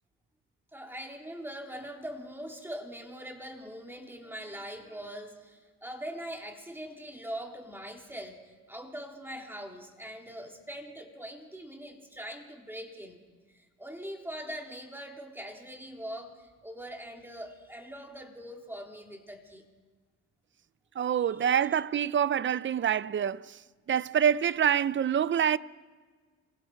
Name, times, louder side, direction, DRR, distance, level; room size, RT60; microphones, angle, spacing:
voice 1, 0.7-13.2 13.5-19.6, equal, 5° right, 3.4 m, -42 dB
voice 2, 21.0-23.6 23.9-25.6, right 9 dB, 40° right, 0.6 m, -26 dB
27.0 x 22.0 x 4.7 m
cardioid pair, 90°, 30 cm